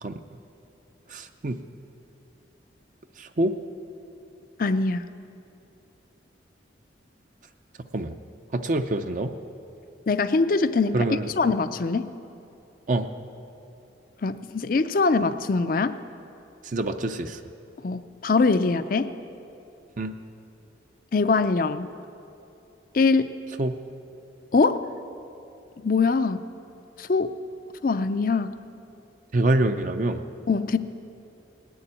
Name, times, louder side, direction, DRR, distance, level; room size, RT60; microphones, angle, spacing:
voice 1, 1.1-1.6 3.2-3.6 7.9-8.1 8.5-9.3 10.9-11.3 12.9-13.1 16.6-17.4 20.0-20.1 23.6-23.8 29.3-30.2, right 2 dB, 45° right, 7 dB, 0.5 m, -25 dB
voice 2, 4.6-5.1 10.1-11.1 11.4-12.1 14.2-16.0 17.8-19.1 21.1-21.9 22.9-23.3 24.5-24.9 25.8-26.5 27.0-27.3 27.8-28.6 30.5-30.8, left 4 dB, 50° left, 12 dB, 0.4 m, -23 dB
18.5 x 7.0 x 9.7 m, 2.7 s
head